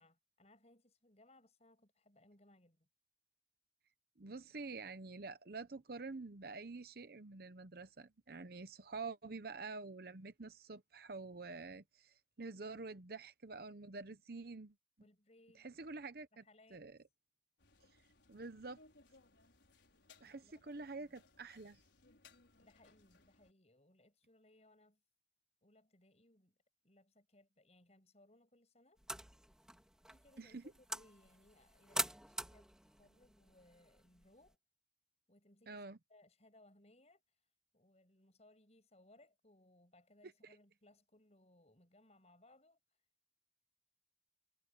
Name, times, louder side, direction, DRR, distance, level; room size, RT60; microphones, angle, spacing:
voice 1, 0.0-2.9 15.0-15.7 16.3-16.8 20.3-21.1 22.6-25.0 25.6-26.5 26.8-29.0 30.1-34.6 35.3-35.8 36.1-37.5 37.7-43.0, left 1 dB, 35° left, 6.4 m, -67 dB
voice 2, 4.2-14.7 15.5-16.4 16.7-17.0 18.3-18.8 20.2-21.8 30.4-30.6 35.7-36.0 40.2-40.6, right 3 dB, 55° right, 0.8 m, -48 dB
sound 1, 17.6-23.5, left 3 dB, 75° left, 5.2 m, -67 dB
sound 2, 29.0-34.5, right 1 dB, 5° right, 3.2 m, -45 dB
head